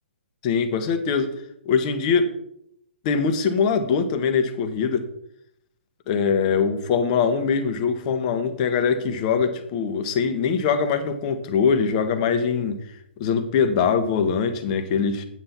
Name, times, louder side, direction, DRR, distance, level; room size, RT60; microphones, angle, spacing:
voice 1, 0.4-1.3 1.6-2.3 3.0-5.1 6.1-12.8 13.2-15.2, left 6 dB, 35° left, 8 dB, 1.2 m, -22 dB
8.7 x 7.9 x 4.3 m, 0.75 s
hypercardioid pair, 130°, 6 cm